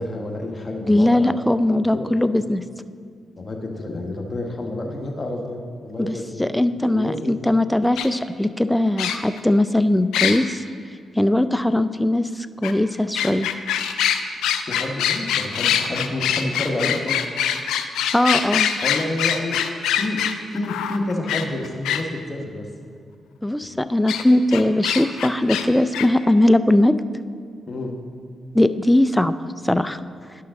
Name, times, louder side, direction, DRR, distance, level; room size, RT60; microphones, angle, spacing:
voice 1, 0.0-1.4 1.9-2.1 3.4-6.4 6.9-7.3 14.6-17.2 18.8-19.6 20.0-22.7 27.7-27.9, left 2 dB, 35° left, 1 dB, 1.4 m, -29 dB
voice 2, 0.9-2.6 6.0-10.6 11.2-13.5 18.1-18.8 23.4-27.0 28.5-29.3 29.6-30.0, left 1 dB, 10° left, 12 dB, 0.4 m, -19 dB
sound 1, 8.0-8.1 9.0-9.4 10.1-10.4 12.6-12.7 13.1-22.0 24.1-24.2 24.5-25.6 25.9-26.1, left 9 dB, 85° left, 0.4 m, -23 dB
11.0 x 5.7 x 3.8 m, 2.2 s
supercardioid pair, 45°, 0 cm